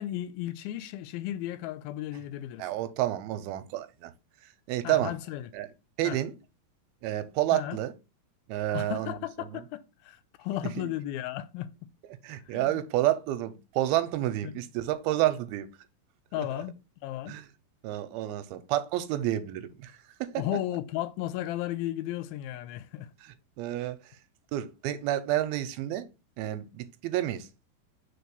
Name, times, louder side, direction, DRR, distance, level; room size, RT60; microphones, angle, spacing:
voice 1, 0.0-2.7 4.8-5.5 6.0-6.2 7.5-7.8 8.7-11.7 12.5-12.7 14.4-14.5 16.3-16.7 17.0-17.4 20.4-23.1, left 13 dB, 85° left, 2.4 m, -34 dB
voice 2, 2.6-4.1 4.7-5.1 5.5-5.7 6.0-6.3 7.0-7.9 8.5-9.1 9.5-9.6 10.8-10.9 12.2-15.7 16.4-16.5 17.3-17.5 17.8-20.3 23.2-24.0 24.5-26.1 26.4-27.5, right 14 dB, 90° right, 2.5 m, -30 dB
4.7 x 4.5 x 5.2 m
omnidirectional pair, 4.3 m